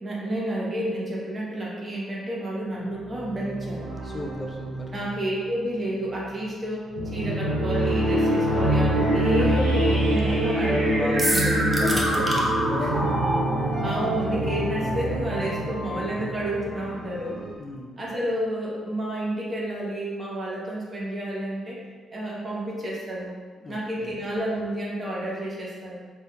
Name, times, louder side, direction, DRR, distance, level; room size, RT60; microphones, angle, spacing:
voice 1, 0.0-3.9 4.9-12.4 12.8-12.9 13.8-17.4 18.0-21.8 22.1-23.4 23.7-26.0, right 1 dB, 35° right, -4 dB, 0.9 m, -30 dB
sound 1, 2.7-11.2 11.8-17.5, right 2 dB, 55° right, 0.5 m, -36 dB
voice 2, 4.0-4.7 10.3-13.1 17.6-18.0 23.6-24.2, left 1 dB, 35° left, 0 dB, 0.4 m, -33 dB
sound 2, 6.9-17.2, equal, 85° right, 1.2 m, -24 dB
sound 3, 11.2-12.4, right 1 dB, 15° right, 0.7 m, -27 dB
3.8 x 2.6 x 2.2 m, 1.5 s
supercardioid pair, 55°, 0 cm